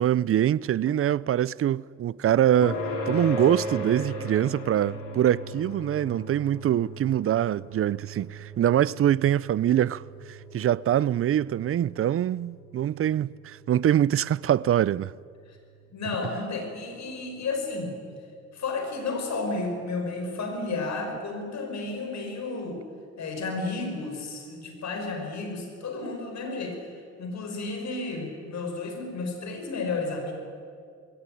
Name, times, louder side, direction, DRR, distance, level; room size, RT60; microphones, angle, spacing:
voice 1, 0.0-2.8 3.1-10.0 10.3-15.1, right 11 dB, 45° right, 0.5 m, -24 dB
sound 1, 2.6-17.5, left 1 dB, 80° left, 4.4 m, -38 dB
voice 2, 15.9-17.9 18.5-22.8 23.2-26.8 27.2-30.3, left 3 dB, 65° left, 5.4 m, -32 dB
21.0 x 18.0 x 10.0 m
cardioid pair, 90°, 30 cm